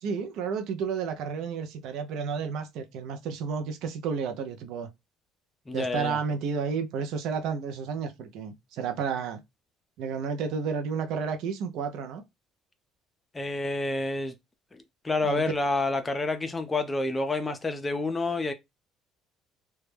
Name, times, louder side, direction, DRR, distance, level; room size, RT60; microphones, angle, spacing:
voice 1, 0.0-4.9 5.7-9.4 10.0-12.2 15.2-15.5, right 6 dB, 70° right, 0.4 m, -31 dB
voice 2, 5.7-6.2 13.3-14.3 14.7-18.5, left 2 dB, 20° left, 0.4 m, -29 dB
2.2 x 2.0 x 3.1 m
cardioid pair, 100°, 0 cm